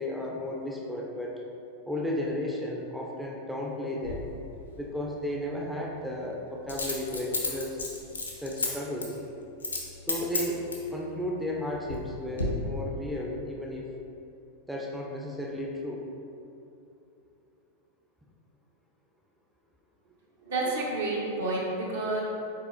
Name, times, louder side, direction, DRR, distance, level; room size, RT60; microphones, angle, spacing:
voice 1, 0.0-1.4 1.9-4.3 4.8-7.8 8.4-9.2 10.0-13.9 14.7-16.1, left 1 dB, 5° right, -2 dB, 0.5 m, -34 dB
Coin (dropping), 4.0-4.2 6.7-8.7 9.0-9.2 9.6-9.8 10.1-10.9 11.5-12.1 12.4-12.5, left 3 dB, 75° left, 0.6 m, -32 dB
voice 2, 20.4-22.2, right 2 dB, 60° right, -3 dB, 0.9 m, -30 dB
4.8 x 3.9 x 2.5 m, 2.8 s
figure-of-eight pair, 90°, 0 cm